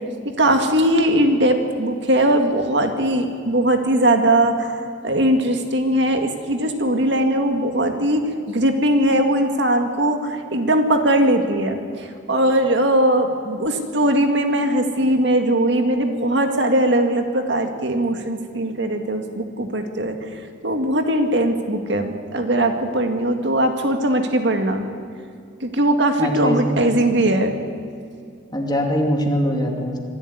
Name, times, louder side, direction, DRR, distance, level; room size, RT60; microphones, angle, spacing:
voice 1, 0.4-8.2 8.5-20.2 20.6-24.8 25.6-27.6, right 1 dB, 60° right, 5 dB, 2.0 m, -20 dB
voice 2, 26.2-26.8 28.5-30.0, equal, 20° left, 1 dB, 2.6 m, -22 dB
24.5 x 12.5 x 9.8 m, 2.4 s
head